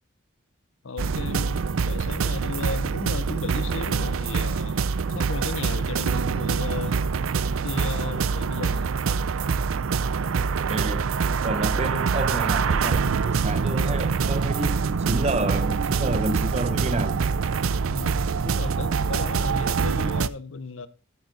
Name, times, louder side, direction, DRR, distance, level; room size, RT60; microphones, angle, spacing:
voice 1, 0.8-4.8 5.1-7.0 7.6-8.9 17.9-18.2 18.4-20.9, left 4 dB, 75° left, 0.8 m, -35 dB
sound 1, 1.0-20.3, right 5 dB, 85° right, 0.5 m, -25 dB
voice 2, 10.4-11.1 11.4-17.4, right 2 dB, 30° right, 0.7 m, -30 dB
10.5 x 8.6 x 3.9 m
head